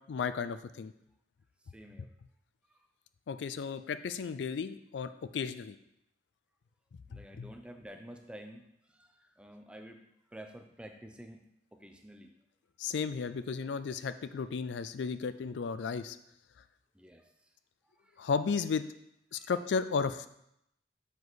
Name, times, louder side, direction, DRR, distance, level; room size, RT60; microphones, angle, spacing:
voice 1, 0.1-0.9 3.3-5.8 7.1-7.5 12.8-16.2 18.2-18.8 19.3-20.3, left 5 dB, 80° left, 12 dB, 0.4 m, -34 dB
voice 2, 1.7-2.1 2.7-2.8 7.1-11.4 11.7-12.3 16.9-17.5 18.0-18.2 19.3-19.5, right 1 dB, 5° right, 5 dB, 0.5 m, -50 dB
7.0 x 4.7 x 4.0 m, 0.79 s
head